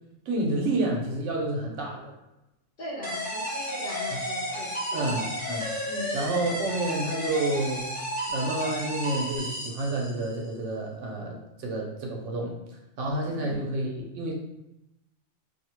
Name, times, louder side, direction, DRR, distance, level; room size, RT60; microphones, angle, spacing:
voice 1, 0.3-2.1 4.1-4.2 4.9-5.7 6.1-7.9 8.3-12.6 13.0-14.3, right 2 dB, 75° right, -1 dB, 1.0 m, -29 dB
voice 2, 2.8-5.2 5.9-6.1 13.3-13.5, equal, 50° left, -6 dB, 0.9 m, -39 dB
sound 1, 3.0-10.4, equal, 10° left, 0.5 m, -33 dB
2.6 x 2.0 x 2.9 m, 0.91 s
omnidirectional pair, 1.3 m